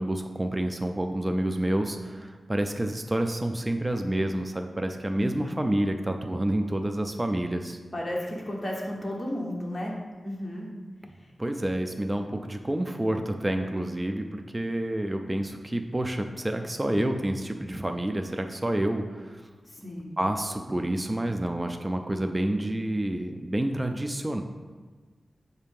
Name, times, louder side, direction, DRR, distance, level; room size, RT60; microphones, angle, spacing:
voice 1, 0.0-7.8 11.4-19.4 20.2-24.4, right 1 dB, 20° right, 5 dB, 0.4 m, -29 dB
voice 2, 5.1-5.6 7.9-9.9 10.2-10.7 11.2-11.3 19.6-20.1, left 1 dB, 25° left, -2 dB, 1.0 m, -33 dB
6.6 x 2.8 x 5.3 m, 1.4 s
wide cardioid pair, 75°, 0 cm